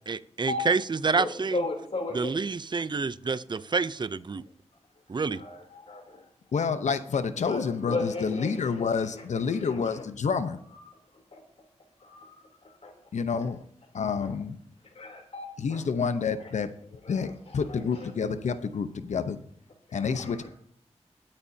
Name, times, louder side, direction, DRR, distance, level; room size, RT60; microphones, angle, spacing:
voice 1, 0.1-1.6 2.1-4.4 5.1-5.4, right 4 dB, 40° right, 15 dB, 0.6 m, -28 dB
voice 2, 1.2-2.4 5.1-6.2 7.4-7.6 7.9-10.0 10.7-11.4 12.0-12.9 14.2-14.3 14.9-15.8 16.4-16.5 16.9-18.1 20.0-20.5, left 3 dB, 65° left, 1 dB, 3.4 m, -37 dB
voice 3, 6.5-10.6 13.1-13.6 13.9-14.6 15.6-16.7 17.1-19.4 19.9-20.5, left 5 dB, 85° left, 11 dB, 0.9 m, -28 dB
21.5 x 8.8 x 2.8 m, 0.64 s
cardioid pair, 60°, 12 cm